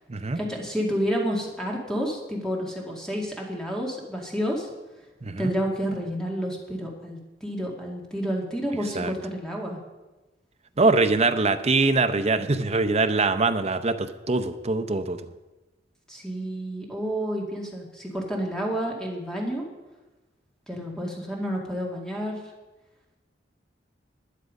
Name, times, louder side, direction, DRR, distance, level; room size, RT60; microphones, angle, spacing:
voice 1, 0.4-4.7 5.4-9.8 16.1-19.7 20.7-22.4, equal, 5° left, -1 dB, 2.0 m, -30 dB
voice 2, 5.2-5.5 9.0-9.1 10.8-15.2, right 3 dB, 35° right, 9 dB, 0.6 m, -23 dB
12.0 x 10.0 x 5.2 m, 1.1 s
head